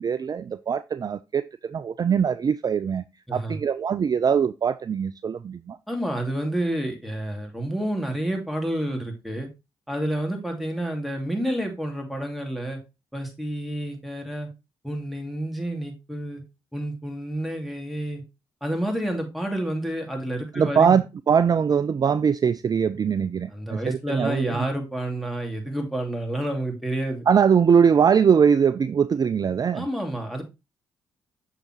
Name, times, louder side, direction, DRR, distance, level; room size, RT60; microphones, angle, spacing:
voice 1, 0.0-3.1 3.3-5.8 20.5-24.7 27.3-29.9, right 7 dB, 35° right, 0.4 m, -22 dB
voice 2, 3.3-3.6 5.9-9.5 9.9-12.8 13.1-14.5 14.8-16.4 16.7-18.2 18.6-21.0 23.5-27.2 29.7-30.4, right 1 dB, ahead, 2.5 m, -29 dB
6.5 x 5.8 x 3.0 m
hypercardioid pair, 40°, 11 cm